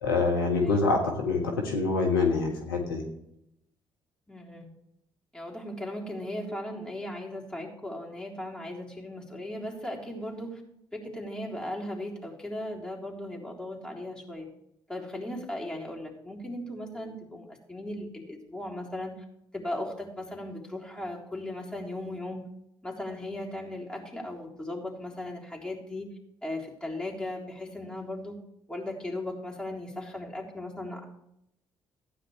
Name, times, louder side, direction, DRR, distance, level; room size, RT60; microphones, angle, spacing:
voice 1, 0.0-3.0, left 3 dB, 80° left, 0 dB, 1.6 m, -26 dB
voice 2, 4.3-4.7 5.3-10.6 10.9-14.5 14.9-19.2 19.5-22.5 22.8-26.1 26.4-28.4 28.7-31.0, left 1 dB, 10° left, -2 dB, 3.8 m, -37 dB
15.5 x 9.8 x 3.3 m, 0.78 s
figure-of-eight pair, 45°, 11 cm